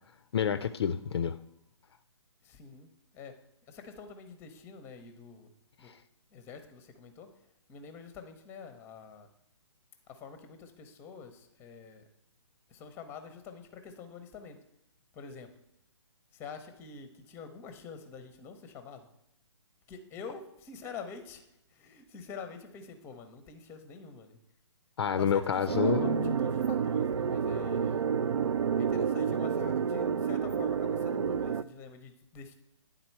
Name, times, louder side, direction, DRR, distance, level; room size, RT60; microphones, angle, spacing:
voice 1, 0.3-1.3 25.0-26.4, left 7 dB, 55° left, 12 dB, 0.4 m, -29 dB
voice 2, 2.4-2.9 3.1-3.3 3.7-5.5 5.8-5.9 6.3-7.3 7.7-9.3 10.1-12.1 12.7-14.6 15.1-15.5 16.3-19.1 19.9-21.4 21.7-24.4 25.2-28.1 28.7-32.5, left 5 dB, 15° left, 8 dB, 0.6 m, -46 dB
sound 1, 25.7-31.6, right 7 dB, 80° right, 0.4 m, -29 dB
9.6 x 3.8 x 4.5 m, 0.83 s
hypercardioid pair, 140°, 16 cm